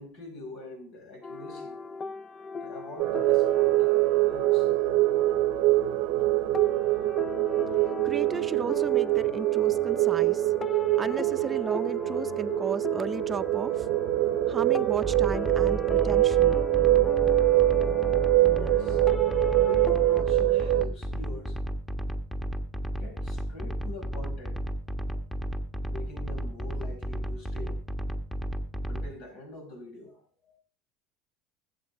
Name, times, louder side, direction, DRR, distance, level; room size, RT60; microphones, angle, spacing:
voice 1, 0.0-1.8 2.6-4.7 18.5-21.6 22.9-24.6 24.9-25.2 25.9-27.8 28.8-30.6, left 2 dB, 70° left, 5.3 m, -45 dB
sound 1, 1.2-20.2, left 5 dB, 30° left, 0.4 m, -39 dB
sound 2, 3.0-20.9, right 17 dB, 70° right, 0.7 m, -24 dB
voice 2, 8.0-10.5 11.0-13.9 14.5-16.6, right 5 dB, 30° right, 0.5 m, -35 dB
sound 3, 15.0-29.1, equal, 10° left, 1.4 m, -33 dB
21.0 x 8.0 x 3.5 m
hypercardioid pair, 90°, 0 cm